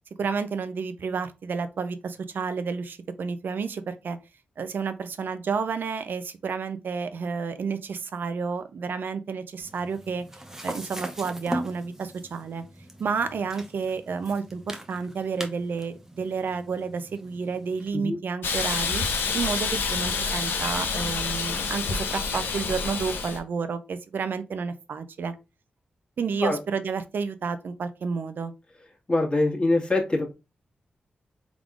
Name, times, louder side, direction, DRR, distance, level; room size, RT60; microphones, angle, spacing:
voice 1, 0.2-4.2 4.6-10.3 10.6-12.6 13.0-19.0 19.3-25.3 26.2-28.5, right 5 dB, 70° right, 0.5 m, -30 dB
sound 1, 9.6-17.9, right 1 dB, 10° right, 0.9 m, -40 dB
Hiss, 18.4-23.4, left 5 dB, 80° left, 0.6 m, -28 dB
voice 2, 29.1-30.3, left 2 dB, 30° left, 1.6 m, -24 dB
3.6 x 3.6 x 2.4 m
cardioid pair, 50°, 4 cm